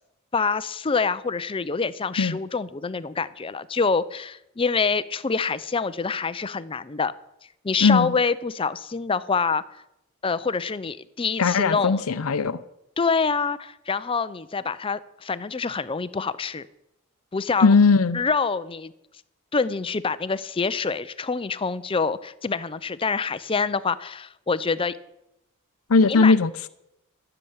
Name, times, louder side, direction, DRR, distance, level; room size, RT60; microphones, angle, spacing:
voice 1, 0.3-7.1 7.6-9.6 10.2-12.0 13.0-16.7 17.3-17.7 18.1-18.9 19.5-25.0 26.1-26.3, left 5 dB, 25° left, 15 dB, 0.5 m, -26 dB
voice 2, 7.8-8.1 11.4-12.6 17.6-18.2 25.9-26.7, left 4 dB, 85° left, 12 dB, 0.6 m, -19 dB
14.0 x 6.9 x 8.7 m, 0.85 s
head